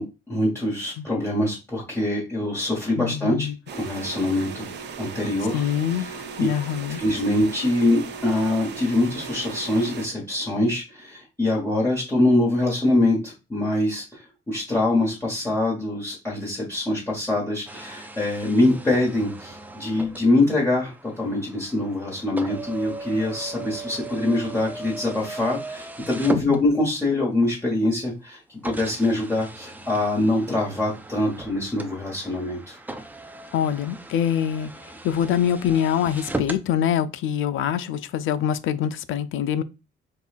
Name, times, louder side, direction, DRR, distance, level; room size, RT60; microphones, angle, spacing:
voice 1, 0.0-4.7 5.0-5.7 6.0-6.2 7.0-32.8, left 2 dB, 10° left, 1.3 m, -24 dB
voice 2, 3.0-3.5 5.5-6.1 6.4-7.0 26.3-26.6 33.5-39.6, left 9 dB, 80° left, 0.4 m, -24 dB
sound 1, 3.7-10.1, right 5 dB, 55° right, 0.7 m, -37 dB
sound 2, 17.7-27.1 27.9-28.0 28.6-36.7, right 2 dB, 10° right, 0.4 m, -37 dB
5.4 x 2.4 x 2.4 m
cardioid pair, 115°, 21 cm